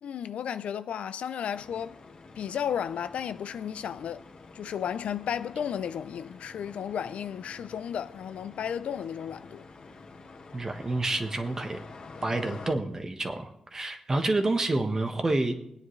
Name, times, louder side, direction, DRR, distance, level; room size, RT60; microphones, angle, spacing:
voice 1, 0.0-2.0 2.4-4.3 4.5-9.7, left 8 dB, 75° left, 0.5 m, -33 dB
sound 1, 1.5-12.8, left 4 dB, 50° left, 1.6 m, -48 dB
voice 2, 10.5-11.8 12.2-15.5, right 2 dB, 25° right, 1.3 m, -28 dB
23.0 x 9.6 x 3.2 m
wide cardioid pair, 120°, 2 cm